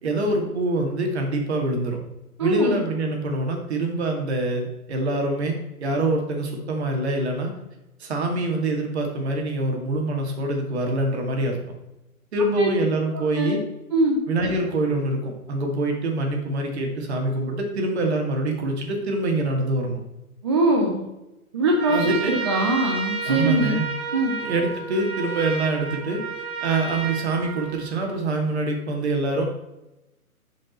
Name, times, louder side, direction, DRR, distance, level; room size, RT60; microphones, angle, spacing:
voice 1, 0.0-2.0 2.4-7.5 8.0-11.6 12.3-13.6 14.3-20.0 21.9-22.4 23.3-23.9 24.4-26.2 26.6-29.4, right 2 dB, 45° right, 2 dB, 2.3 m, -25 dB
voice 2, 2.4-2.8 12.6-12.7 13.3-13.5 13.9-14.2 20.4-21.1 21.5-23.8 24.1-24.4, right 1 dB, 20° right, 1 dB, 0.6 m, -22 dB
Trumpet, 21.7-28.2, right 5 dB, 75° right, 2.0 m, -31 dB
11.0 x 5.5 x 4.3 m, 0.96 s
figure-of-eight pair, 140°, 45 cm